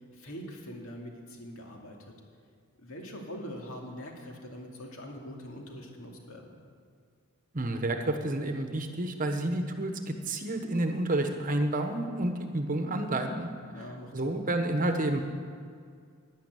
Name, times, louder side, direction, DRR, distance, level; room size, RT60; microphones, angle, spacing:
voice 1, 0.2-2.1 2.8-6.6 13.7-14.4, equal, 65° left, 0 dB, 2.5 m, -43 dB
voice 2, 7.5-13.5 13.8-15.2, right 1 dB, 35° right, 6 dB, 1.1 m, -30 dB
12.0 x 10.5 x 9.2 m, 2.2 s
head